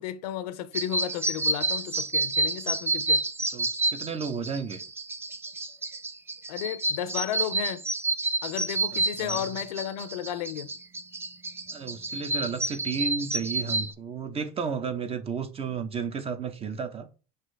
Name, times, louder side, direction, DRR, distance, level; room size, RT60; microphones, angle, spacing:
voice 1, 0.0-3.2 6.5-7.8 8.4-10.7, left 11 dB, 90° left, 0.4 m, -33 dB
sound 1, 0.7-13.9, right 2 dB, 10° right, 0.4 m, -29 dB
voice 2, 3.5-4.8 8.9-9.5 11.7-17.1, right 5 dB, 30° right, 0.8 m, -33 dB
5.9 x 2.7 x 3.3 m
supercardioid pair, 90°, 20 cm